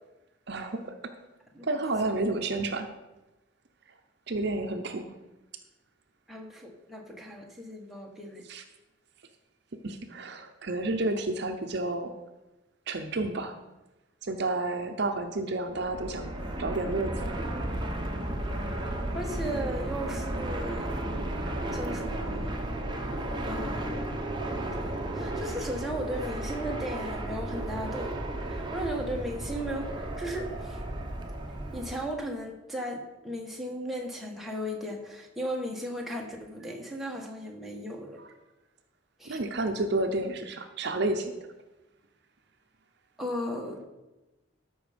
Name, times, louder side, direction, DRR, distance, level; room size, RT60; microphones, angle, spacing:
voice 1, 0.5-0.8 1.6-2.9 4.3-5.1 8.5-8.6 9.8-12.1 12.9-13.6 14.2-16.3 16.6-17.4 39.3-41.3, right 2 dB, 55° right, 6 dB, 0.7 m, -30 dB
voice 2, 1.5-2.2 6.3-8.4 19.1-20.9 21.7-22.5 23.4-23.9 24.8-28.1 28.5-30.8 31.7-38.2 39.2-39.4 43.2-43.8, equal, ahead, -1 dB, 1.3 m, -36 dB
Fixed-wing aircraft airplane, 15.7-32.1, right 1 dB, 20° right, 0.9 m, -34 dB
13.0 x 5.5 x 5.1 m, 1.1 s
head